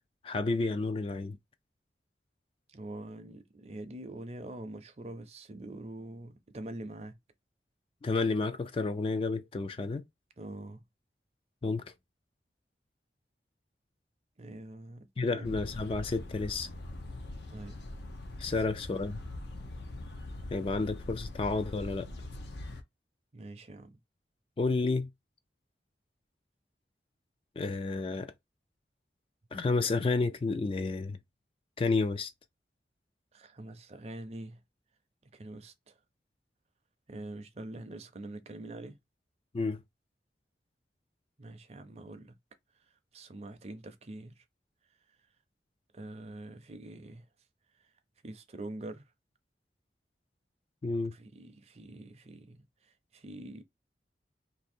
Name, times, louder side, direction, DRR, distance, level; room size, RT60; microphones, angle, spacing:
voice 1, 0.2-1.4 8.0-10.1 11.6-11.8 15.2-16.7 18.4-19.2 20.5-22.1 24.6-25.1 27.6-28.3 29.5-31.2 31.8-32.3 39.5-39.8 50.8-51.1, left 3 dB, 30° left, 0.3 m, -31 dB
voice 2, 2.7-7.2 10.4-10.8 14.4-15.5 17.5-17.8 18.5-18.8 23.3-24.0 33.3-34.6 35.2-35.9 37.1-39.0 41.4-42.3 43.1-44.4 45.9-47.3 48.2-49.0 51.1-53.6, right 1 dB, 35° right, 0.5 m, -45 dB
sound 1, 15.4-22.8, left 1 dB, 75° left, 0.8 m, -42 dB
2.8 x 2.7 x 4.2 m
head